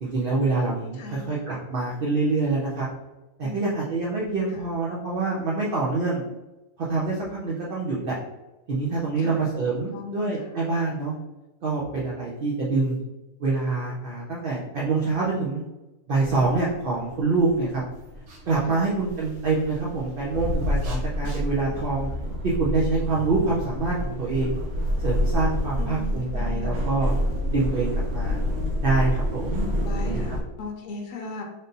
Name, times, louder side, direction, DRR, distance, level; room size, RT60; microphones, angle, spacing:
voice 1, 0.0-2.9 3.4-6.2 6.8-8.2 8.7-11.1 11.6-13.0 13.4-15.6 16.1-17.8 18.5-22.1 22.4-24.6 25.0-27.1 27.5-28.4 28.8-29.7 30.0-30.4, right 3 dB, 50° right, -5 dB, 0.7 m, -26 dB
voice 2, 0.9-1.4 3.4-3.9 4.5-4.7 9.2-10.5 18.6-19.0 21.2-21.4 25.8-26.8 29.8-31.4, left 3 dB, 65° left, 1 dB, 1.0 m, -38 dB
sound 1, 16.2-30.4, equal, 85° right, 1.4 m, -28 dB
3.6 x 2.6 x 3.9 m, 1.0 s
omnidirectional pair, 1.6 m